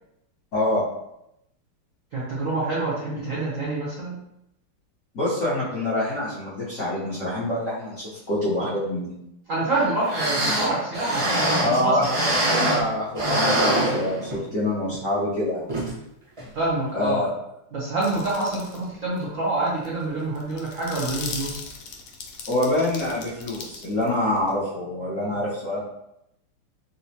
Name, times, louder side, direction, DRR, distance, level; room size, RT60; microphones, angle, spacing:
voice 1, 0.5-0.8 5.1-9.1 11.6-12.0 12.4-15.6 16.9-17.3 22.5-25.8, left 1 dB, 60° left, -10 dB, 0.8 m, -26 dB
voice 2, 2.1-4.2 9.5-12.4 16.5-17.3 17.7-21.7, right 2 dB, 85° right, -6 dB, 0.7 m, -27 dB
sound 1, 9.8-9.9 10.1-12.9 13.1-14.5 14.9-15.0 15.7-15.9 16.4-16.5, right 1 dB, 35° right, 0.4 m, -24 dB
sound 2, 18.0-18.8 19.2-19.3 19.7-24.5, left 4 dB, 85° left, 1.5 m, -38 dB
4.0 x 2.1 x 2.7 m, 0.82 s
omnidirectional pair, 2.4 m